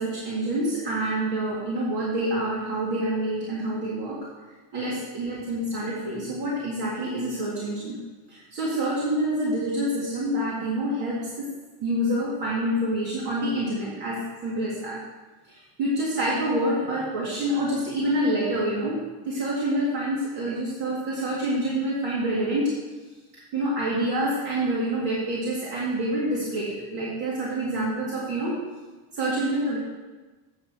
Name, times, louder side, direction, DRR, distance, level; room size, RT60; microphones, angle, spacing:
voice 1, 0.0-4.2 4.7-8.0 8.3-11.5 11.8-15.0 15.5-22.7 23.5-28.6 29.1-29.8, right 1 dB, 50° right, -6 dB, 2.4 m, -27 dB
8.7 x 4.8 x 7.6 m, 1.2 s
cardioid pair, 165°, 47 cm